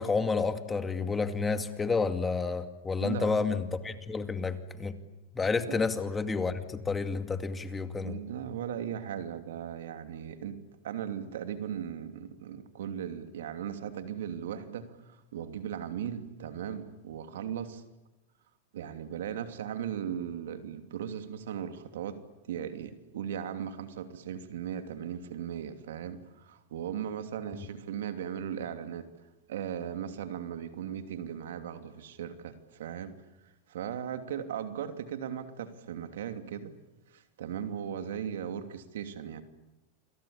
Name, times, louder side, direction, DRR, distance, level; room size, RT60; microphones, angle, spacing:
voice 1, 0.0-5.0 5.3-8.2, left 4 dB, 15° left, 8 dB, 2.3 m, -30 dB
voice 2, 3.0-3.4 5.6-5.9 8.0-17.8 18.7-22.2 22.5-29.1 29.5-33.2 33.7-36.7 37.1-39.4, right 9 dB, 80° right, 8 dB, 2.8 m, -37 dB
28.5 x 23.0 x 8.7 m, 0.98 s
hypercardioid pair, 120°, 0 cm